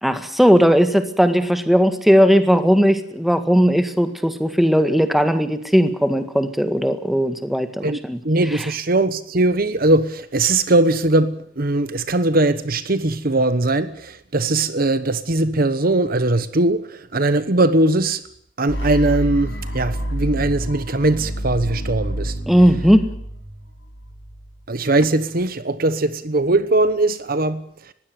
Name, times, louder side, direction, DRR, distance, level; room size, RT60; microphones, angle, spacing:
voice 1, 0.0-8.2 22.5-23.1, equal, ahead, 1.8 m, -17 dB
voice 2, 7.8-18.2 18.6-22.3 24.7-27.6, right 2 dB, 50° right, 1.1 m, -20 dB
sound 1, 18.7-24.6, right 1 dB, 75° left, 4.9 m, -28 dB
21.0 x 16.0 x 9.5 m
head